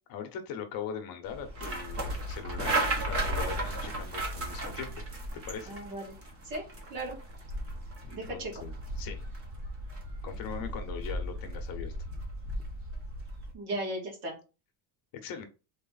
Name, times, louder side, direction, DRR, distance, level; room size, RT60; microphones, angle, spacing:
voice 1, 0.1-5.0 5.3-5.7 8.0-9.2 10.2-11.9 15.2-15.4, left 7 dB, 50° left, 6 dB, 0.9 m, -40 dB
sound 1, 1.3-13.5, right 1 dB, 30° right, 1.1 m, -35 dB
voice 2, 5.7-6.2 6.4-7.2 8.1-8.5 13.5-14.4, right 1 dB, 55° right, -1 dB, 2.5 m, -36 dB
4.1 x 3.2 x 4.0 m, 0.33 s
cardioid pair, 175°, 46 cm